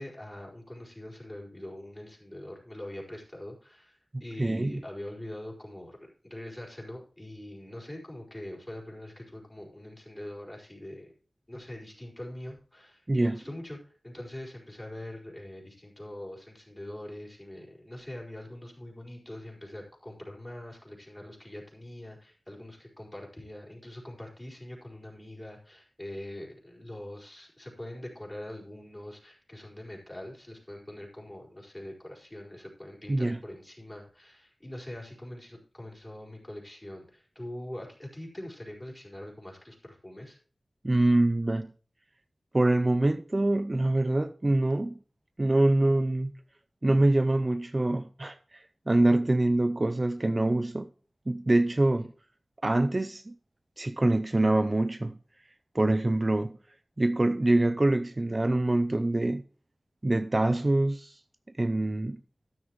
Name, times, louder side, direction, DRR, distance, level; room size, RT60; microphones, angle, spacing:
voice 1, 0.0-11.1 11.5-40.4 52.0-52.1, left 1 dB, 20° left, 4.6 m, -43 dB
voice 2, 4.4-4.8 13.1-13.4 33.1-33.4 40.8-41.7 42.5-45.0 45.4-46.3 46.8-50.9 51.3-52.1 52.6-53.3 53.8-55.2 55.7-56.6 57.0-59.4 60.0-61.2 61.6-62.2, right 2 dB, 35° right, 0.5 m, -25 dB
12.5 x 9.9 x 3.1 m
wide cardioid pair, 60°, 0 cm